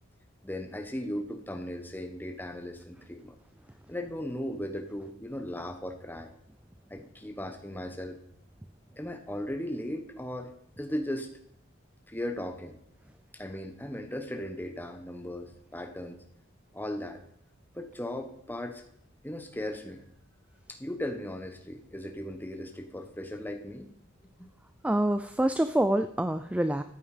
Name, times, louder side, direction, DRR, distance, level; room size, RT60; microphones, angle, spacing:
voice 1, 0.4-3.4 3.9-6.3 6.9-8.2 9.0-10.5 10.8-11.3 12.1-12.8 13.3-16.2 16.7-17.2 17.7-18.8 19.2-20.0 20.7-23.9 24.4-24.5, left 1 dB, 10° left, 6 dB, 1.2 m, -37 dB
voice 2, 24.8-26.8, right 1 dB, 5° right, 10 dB, 0.4 m, -26 dB
14.0 x 9.0 x 5.0 m, 0.73 s
head